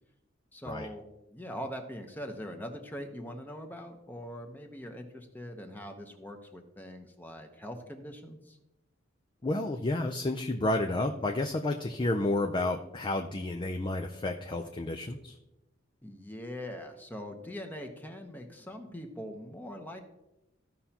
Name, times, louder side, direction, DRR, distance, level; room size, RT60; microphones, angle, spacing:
voice 1, 0.5-8.6 16.0-20.0, equal, 10° left, 4 dB, 0.9 m, -42 dB
voice 2, 9.4-15.4, left 2 dB, 25° left, 4 dB, 0.5 m, -31 dB
15.0 x 5.5 x 2.9 m, 0.93 s
head